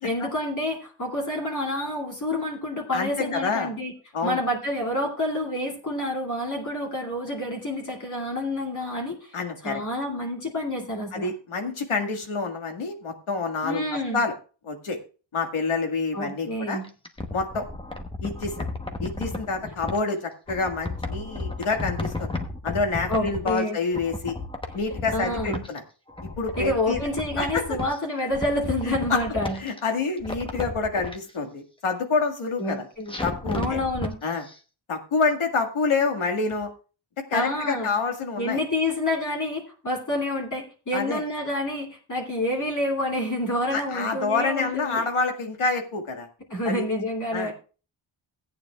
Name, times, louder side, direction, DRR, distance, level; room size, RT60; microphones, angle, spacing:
voice 1, 0.0-3.9 4.2-11.3 13.6-14.2 16.1-16.9 23.1-23.8 25.1-25.6 26.6-29.6 32.6-33.2 33.5-34.2 37.3-37.9 38.4-45.0 46.5-47.5, left 1 dB, 40° left, -2 dB, 2.7 m, -28 dB
voice 2, 2.9-3.7 4.1-4.4 9.3-9.8 11.1-14.3 14.6-15.0 15.3-16.8 17.3-17.7 18.2-18.5 19.0-22.3 22.6-24.4 24.7-25.8 26.2-27.0 27.4-27.6 28.9-29.2 29.6-32.9 33.2-33.8 34.2-34.5 34.9-36.7 37.3-38.6 40.9-41.2 43.7-46.3 46.7-46.9 47.3-47.5, left 4 dB, 80° left, 4 dB, 1.9 m, -27 dB
sound 1, 16.8-20.0 20.5-23.7 23.9-25.8 26.1-28.0 28.3-29.8 30.2-31.2 33.1-34.1 34.5-34.6, left 2 dB, 10° left, 1.0 m, -33 dB
17.0 x 9.2 x 2.4 m, 0.36 s
wide cardioid pair, 160°, 49 cm